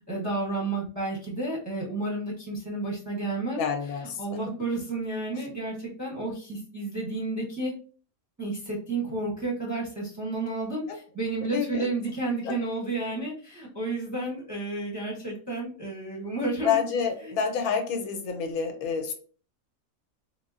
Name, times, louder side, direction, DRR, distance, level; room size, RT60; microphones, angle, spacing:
voice 1, 0.1-3.6 4.2-7.7 8.4-16.8 17.3-17.4, right 2 dB, 20° right, -4 dB, 0.6 m, -31 dB
voice 2, 3.6-4.5 5.3-5.4 11.5-11.9 12.4-12.5 16.6-19.1, left 6 dB, 90° left, 5 dB, 1.1 m, -28 dB
3.7 x 2.1 x 2.4 m, 0.41 s
omnidirectional pair, 1.5 m